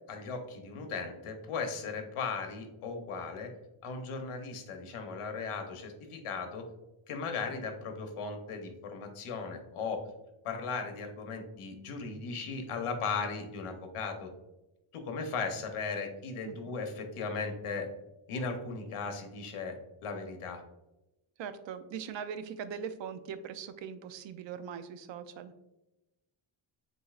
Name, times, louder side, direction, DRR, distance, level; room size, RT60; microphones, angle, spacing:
voice 1, 0.1-3.5 3.8-6.7 7.1-10.1 10.4-14.3 14.9-17.9 18.3-19.8 20.0-20.6, left 4 dB, 90° left, 5 dB, 0.9 m, -37 dB
voice 2, 21.4-25.5, right 7 dB, 65° right, 11 dB, 0.5 m, -41 dB
7.6 x 2.7 x 2.4 m, 0.97 s
wide cardioid pair, 145°, 50 cm